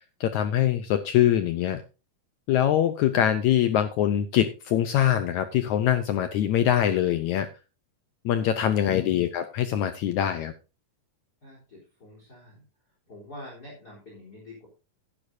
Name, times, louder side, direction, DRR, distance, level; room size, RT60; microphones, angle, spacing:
voice 1, 0.2-1.8 2.5-7.5 8.3-10.5, left 11 dB, 75° left, 9 dB, 1.9 m, -23 dB
voice 2, 11.4-12.6 13.1-14.7, left 1 dB, 25° left, -2 dB, 4.0 m, -46 dB
15.5 x 9.9 x 2.7 m, 0.31 s
omnidirectional pair, 3.9 m